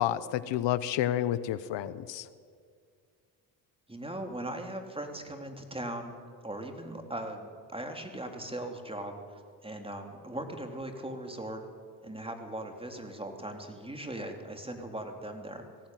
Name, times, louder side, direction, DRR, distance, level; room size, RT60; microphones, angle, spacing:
voice 1, 0.0-2.3, left 12 dB, 75° left, 16 dB, 0.9 m, -30 dB
voice 2, 3.9-6.1 6.4-11.6 12.0-15.7, right 1 dB, 10° right, 4 dB, 3.4 m, -39 dB
20.0 x 16.0 x 9.2 m, 2.2 s
supercardioid pair, 70°, 44 cm